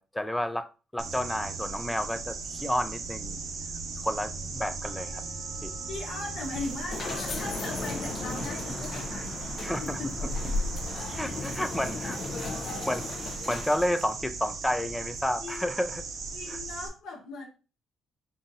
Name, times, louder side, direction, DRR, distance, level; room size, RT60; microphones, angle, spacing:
voice 1, 0.0-3.4 4.0-5.2 5.6-5.7 9.6-10.0 11.1-12.2 12.9-13.0 13.5-16.0 16.5-16.6, left 1 dB, 10° left, 0.3 m, -31 dB
sound 1, 1.0-16.9, right 4 dB, 65° right, 0.8 m, -38 dB
sound 2, 4.8-11.7 12.0-12.1 12.6-12.7 13.2-13.3, right 3 dB, 85° right, 1.0 m, -57 dB
voice 2, 5.9-10.3 11.1-13.1 15.4-15.6 16.3-17.5, left 3 dB, 80° left, 1.3 m, -40 dB
sound 3, 6.3-14.1, left 3 dB, 55° left, 0.7 m, -35 dB
5.4 x 2.6 x 2.7 m
cardioid pair, 90°, 0 cm